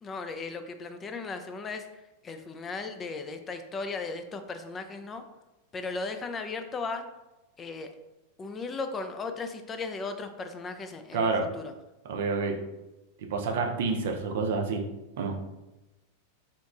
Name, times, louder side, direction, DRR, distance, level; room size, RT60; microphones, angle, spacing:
voice 1, 0.0-5.2 5.7-7.1 7.6-7.9 8.4-11.7, left 4 dB, 20° left, 7 dB, 0.3 m, -36 dB
voice 2, 11.1-11.5 12.1-12.6 13.3-14.8 15.2-15.3, right 4 dB, 55° right, 3 dB, 0.5 m, -28 dB
4.1 x 2.9 x 2.4 m, 1.0 s
figure-of-eight pair, 90°, 0 cm